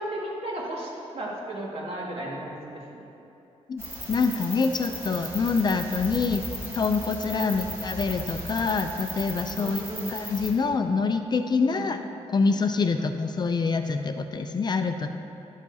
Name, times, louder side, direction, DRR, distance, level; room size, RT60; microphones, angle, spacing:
voice 1, 0.0-3.1 7.4-7.6 9.6-10.1 11.7-11.9 13.0-13.1, right 1 dB, 55° right, -4 dB, 2.0 m, -35 dB
sound 1, 3.8-10.5, equal, 20° right, 1.7 m, -37 dB
voice 2, 4.1-6.4 6.7-9.8 10.1-12.0 12.3-15.1, left 4 dB, 35° left, 7 dB, 0.4 m, -25 dB
12.0 x 11.5 x 2.8 m, 2.9 s
wide cardioid pair, 150°, 12 cm